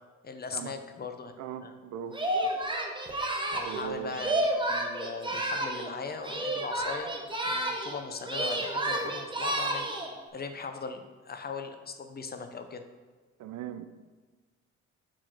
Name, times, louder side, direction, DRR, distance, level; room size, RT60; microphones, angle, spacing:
voice 1, 0.2-1.3 1.6-1.7 2.4-2.5 3.5-7.1 7.4-9.9 10.3-11.0 11.3-12.8, left 4 dB, 30° left, 7 dB, 0.6 m, -39 dB
voice 2, 1.4-2.2 3.6-4.2 13.4-13.9, right 10 dB, 75° right, 11 dB, 0.5 m, -39 dB
Singing, 2.1-5.9 6.2-8.0 8.2-10.1, right 1 dB, 15° right, 0.9 m, -31 dB
4.8 x 3.9 x 5.8 m, 1.4 s
cardioid pair, 90°, 30 cm